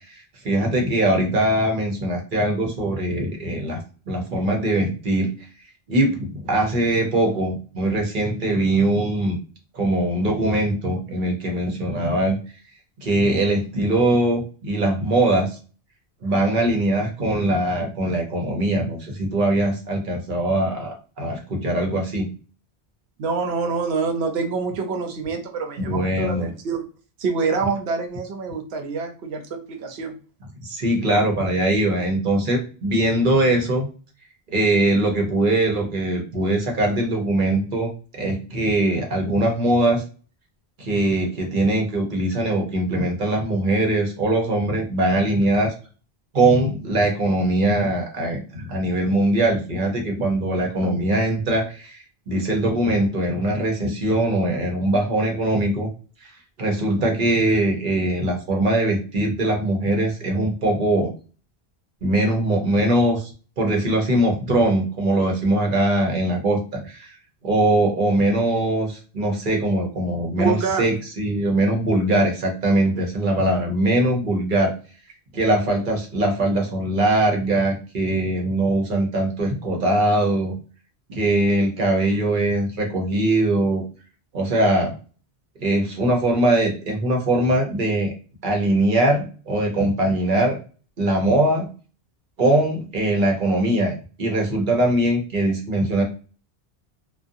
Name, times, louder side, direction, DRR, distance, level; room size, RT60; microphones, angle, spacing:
voice 1, 0.1-5.3 5.9-9.4 9.7-12.4 13.0-15.6 16.2-22.3 25.8-26.5 30.6-33.9 34.5-40.0 40.8-45.7 46.3-55.9 56.6-61.1 62.0-63.3 63.6-67.1 67.4-74.7 75.3-80.6 81.1-83.8 84.3-84.9 85.6-88.1 88.4-90.6 91.0-91.7 92.4-96.0, right 1 dB, 55° right, 1 dB, 0.8 m, -21 dB
voice 2, 23.2-26.9 27.2-30.2 70.4-70.9, right 5 dB, 90° right, 5 dB, 0.9 m, -26 dB
2.4 x 2.2 x 2.6 m, 0.37 s
omnidirectional pair, 1.0 m